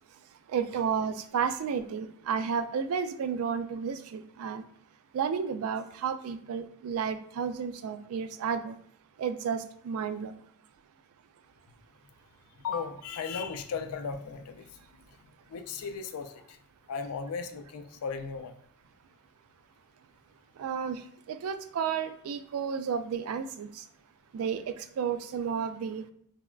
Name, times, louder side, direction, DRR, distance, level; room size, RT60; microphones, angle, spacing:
voice 1, 0.5-4.6 5.1-8.8 9.2-10.3 20.6-21.0 21.3-23.8 24.3-26.0, right 6 dB, 70° right, 0.3 m, -32 dB
voice 2, 12.6-14.8 15.5-16.6 16.9-18.6, left 5 dB, 85° left, 0.4 m, -36 dB
3.4 x 2.1 x 2.3 m
head